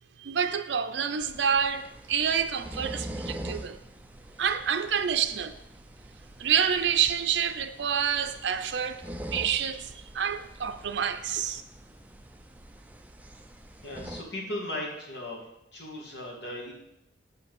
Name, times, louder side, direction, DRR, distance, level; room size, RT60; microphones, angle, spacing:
voice 1, 0.2-3.8 4.4-5.5 6.4-9.0 9.3-11.6, right 8 dB, 75° right, 0.5 m, -28 dB
sound 1, 1.2-14.2, right 1 dB, 10° right, 0.5 m, -44 dB
voice 2, 13.8-15.4 15.7-16.7, left 1 dB, 70° left, 2.2 m, -37 dB
7.3 x 5.6 x 6.0 m
head